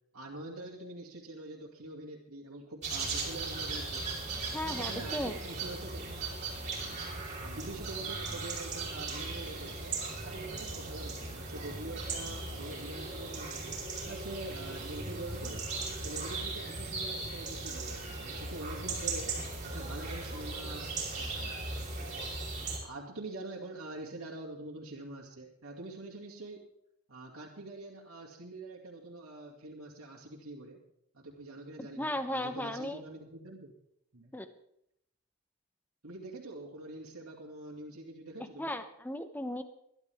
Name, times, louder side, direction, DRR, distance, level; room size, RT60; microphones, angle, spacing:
voice 1, 0.1-4.1 4.6-6.2 6.8-7.1 7.4-13.8 14.1-15.7 16.0-19.4 19.6-21.7 22.8-26.7 27.1-30.8 31.1-33.7 34.1-34.4 36.0-38.7, right 2 dB, 70° right, -5 dB, 2.5 m, -45 dB
sound 1, 2.8-22.8, right 3 dB, 35° right, 4.8 m, -38 dB
voice 2, 4.5-5.4 32.0-33.0 34.3-34.5 38.6-39.6, left 1 dB, 10° left, 9 dB, 0.9 m, -36 dB
22.0 x 11.5 x 3.5 m, 0.77 s
head